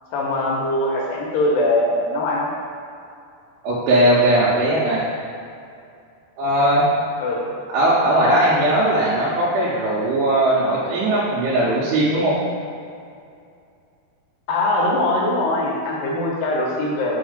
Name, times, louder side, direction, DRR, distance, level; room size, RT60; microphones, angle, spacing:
voice 1, 0.1-2.5 7.2-7.4 14.5-17.2, left 1 dB, 75° left, -3 dB, 2.2 m, -21 dB
voice 2, 3.6-5.0 6.4-6.9 7.7-12.4, right 1 dB, 85° right, -8 dB, 2.9 m, -18 dB
6.2 x 3.1 x 5.0 m, 2.4 s
omnidirectional pair, 4.8 m